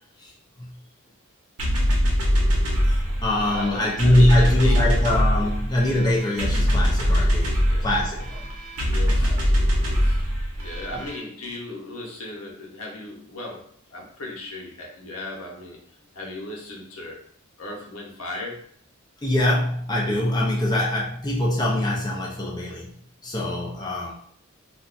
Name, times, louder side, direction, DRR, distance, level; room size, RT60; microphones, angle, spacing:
sound 1, 1.6-11.2, equal, 90° right, 1.0 m, -22 dB
voice 1, 2.9-8.3 9.1-9.3 10.9-11.0 19.2-22.9 23.2-24.1, left 1 dB, 20° left, -4 dB, 0.5 m, -23 dB
voice 2, 3.4-5.0 7.0-8.0 8.3-8.4 8.9-9.5 10.0-15.8 16.1-17.2 17.6-18.6, left 2 dB, 80° left, -2 dB, 1.0 m, -37 dB
2.6 x 2.3 x 3.9 m, 0.63 s
head